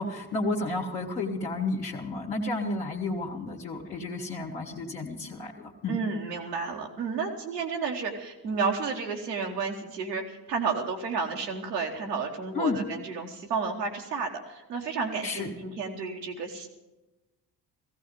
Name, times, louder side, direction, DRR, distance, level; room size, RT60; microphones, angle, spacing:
voice 1, 0.0-6.0 12.5-12.8 15.2-15.5, left 3 dB, 75° left, -2 dB, 2.0 m, -31 dB
voice 2, 5.9-16.7, right 5 dB, 90° right, 1 dB, 1.5 m, -31 dB
16.0 x 15.5 x 5.3 m, 1.0 s
figure-of-eight pair, 40°, 47 cm